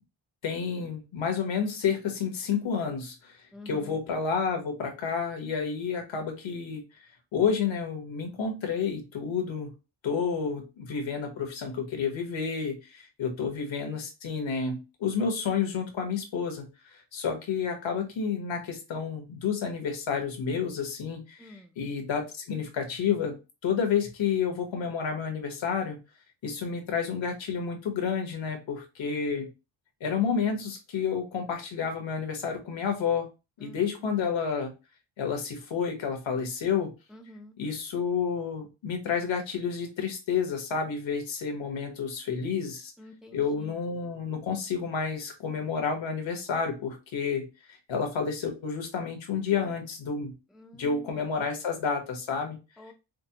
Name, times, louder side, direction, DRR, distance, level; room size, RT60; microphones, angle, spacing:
voice 1, 0.4-3.4 3.6-6.8 7.3-9.7 10.0-23.4 23.6-26.0 26.4-29.5 30.0-33.3 33.6-34.7 35.2-36.9 37.6-42.9 43.3-47.5 47.9-50.3 50.7-52.6, left 6 dB, 75° left, 4 dB, 1.3 m, -30 dB
voice 2, 3.5-4.0 21.4-21.8 33.6-34.2 37.1-37.6 43.0-43.8 50.5-51.3 52.8-52.9, left 1 dB, ahead, 4 dB, 0.5 m, -48 dB
5.1 x 2.0 x 2.9 m, 0.28 s
cardioid pair, 80°, 46 cm